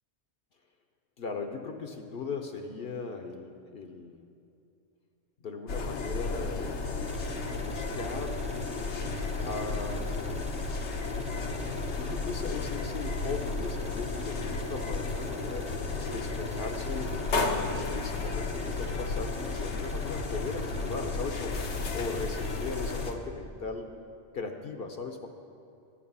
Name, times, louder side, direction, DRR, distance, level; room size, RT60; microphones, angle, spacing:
voice 1, 1.2-4.3 5.4-6.7 7.5-8.4 9.4-10.3 11.9-23.9 24.3-25.3, left 4 dB, 60° left, 5 dB, 0.9 m, -38 dB
sound 1, 5.7-23.1, left 3 dB, 80° left, 1.2 m, -33 dB
sound 2, 7.0-23.1, right 1 dB, 10° right, 0.4 m, -49 dB
13.5 x 8.6 x 5.5 m, 2.6 s
omnidirectional pair, 1.2 m